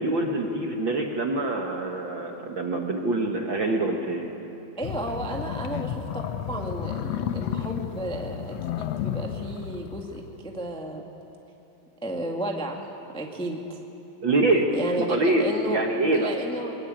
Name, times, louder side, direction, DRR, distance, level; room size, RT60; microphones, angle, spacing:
voice 1, 0.0-4.3 14.2-14.7 15.0-16.3, right 2 dB, 50° right, 2 dB, 1.6 m, -25 dB
sound 1, 4.8-10.5, left 9 dB, 70° left, 1.7 m, -32 dB
voice 2, 4.8-11.0 12.0-13.8 14.7-15.8 16.1-16.7, right 1 dB, 5° left, 1 dB, 0.8 m, -33 dB
23.5 x 22.5 x 9.0 m, 3.0 s
omnidirectional pair, 3.9 m